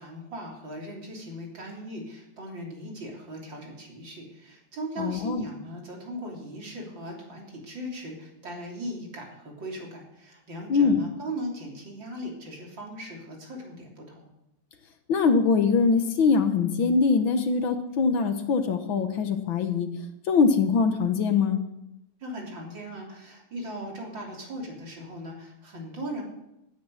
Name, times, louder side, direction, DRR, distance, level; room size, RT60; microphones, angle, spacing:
voice 1, 0.0-14.3 22.2-26.2, equal, 55° right, -1 dB, 4.0 m, -38 dB
voice 2, 5.0-5.5 10.7-11.0 15.1-19.9 20.3-21.6, left 5 dB, 65° left, 7 dB, 1.9 m, -23 dB
16.0 x 10.0 x 6.5 m, 0.87 s
omnidirectional pair, 2.4 m